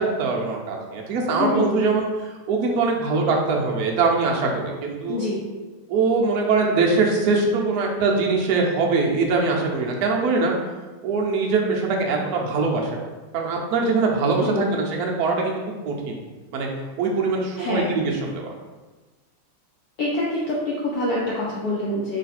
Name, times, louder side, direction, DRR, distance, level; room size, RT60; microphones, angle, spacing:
voice 1, 0.0-5.2 5.9-10.6 11.0-13.0 13.3-16.2 16.5-16.7 17.0-18.5, right 4 dB, 85° right, 0 dB, 0.8 m, -22 dB
voice 2, 1.4-1.8 5.1-5.4 14.4-14.7 17.6-18.0 20.0-22.2, left 2 dB, 80° left, -5 dB, 0.8 m, -25 dB
3.1 x 3.1 x 4.2 m, 1.3 s
omnidirectional pair, 2.4 m